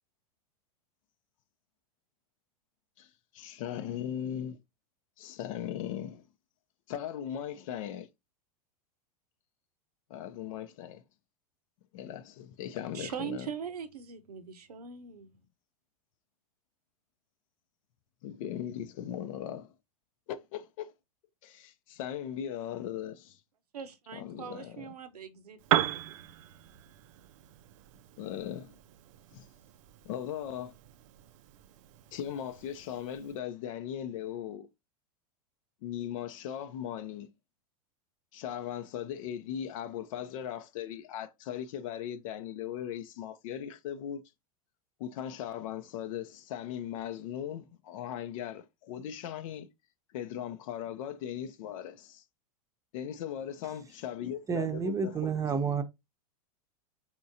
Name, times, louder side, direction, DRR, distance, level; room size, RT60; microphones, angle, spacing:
voice 1, 3.0-4.6 5.2-6.3 6.9-8.1 10.1-11.0 11.9-13.5 18.2-19.7 20.3-20.9 21.4-23.4 24.1-24.9 28.2-28.7 29.3-29.5 30.0-30.8 32.1-34.7 35.8-37.3 38.3-44.2 45.0-49.7 50.1-52.2 52.9-55.3, left 10 dB, 60° left, 0.6 m, -38 dB
voice 2, 12.9-15.3 23.7-26.2, right 7 dB, 85° right, 0.8 m, -41 dB
Piano, 25.6-33.4, right 13 dB, 60° right, 0.4 m, -37 dB
voice 3, 54.5-55.8, right 6 dB, 15° right, 0.7 m, -30 dB
4.3 x 3.7 x 2.7 m
hypercardioid pair, 100°, 19 cm